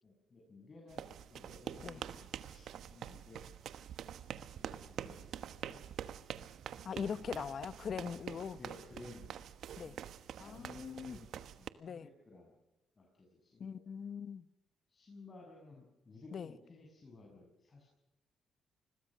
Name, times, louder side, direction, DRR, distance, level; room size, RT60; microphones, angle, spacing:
voice 1, 0.0-3.4 4.2-5.8 6.7-7.1 8.6-9.4 10.4-12.6 13.0-13.8 14.9-17.9, left 2 dB, 35° left, 7.4 m, -56 dB
sound 1, 0.9-11.7, right 9 dB, 70° right, 1.2 m, -46 dB
voice 2, 6.8-8.6 9.8-10.0 10.4-11.2 11.8-12.1 13.6-14.5 16.3-16.5, left 6 dB, 50° left, 1.0 m, -41 dB
28.5 x 21.5 x 6.4 m
cardioid pair, 90°, 0 cm